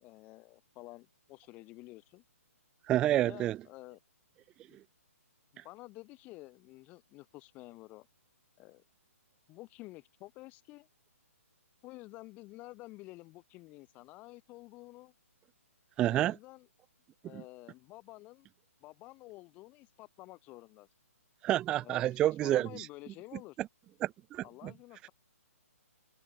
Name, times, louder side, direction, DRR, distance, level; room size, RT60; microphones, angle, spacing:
voice 1, 0.0-2.2 3.2-4.0 4.7-4.8 5.5-8.1 8.6-8.8 9.5-10.9 11.8-15.1 16.1-16.7 17.2-18.5 18.8-20.9 21.8-23.6 24.4-25.1, left 20 dB, 20° left, 5.9 m, -51 dB
voice 2, 2.9-3.6 16.0-16.4 17.3-17.4 21.4-22.9 24.0-24.4, right 13 dB, 10° right, 0.3 m, -28 dB
hypercardioid pair, 165°, 8 cm